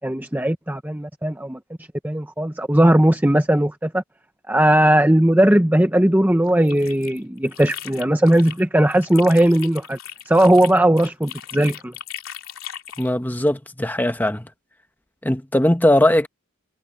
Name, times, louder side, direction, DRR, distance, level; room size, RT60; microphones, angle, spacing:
voice 1, 0.0-1.6 2.0-4.0 4.5-10.0 10.3-11.9, right 1 dB, 10° right, 0.8 m, -18 dB
sound 1, 6.5-8.6 8.9-13.1, left 10 dB, 65° left, 3.5 m, -37 dB
voice 2, 13.0-14.5 15.2-16.3, left 1 dB, 10° left, 1.1 m, -19 dB
head